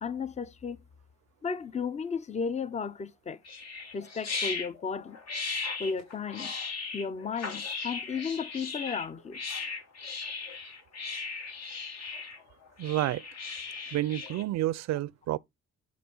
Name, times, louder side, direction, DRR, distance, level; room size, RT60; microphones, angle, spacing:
voice 1, 0.0-0.8 1.4-3.4 3.9-5.2 5.8-6.5 6.9-9.4, left 5 dB, 25° left, 0.5 m, -34 dB
sound 1, 3.4-14.4, left 4 dB, 60° left, 1.5 m, -37 dB
voice 2, 12.8-13.2 13.9-15.4, right 15 dB, 60° right, 0.4 m, -29 dB
7.2 x 2.5 x 5.3 m
cardioid pair, 90°, 30 cm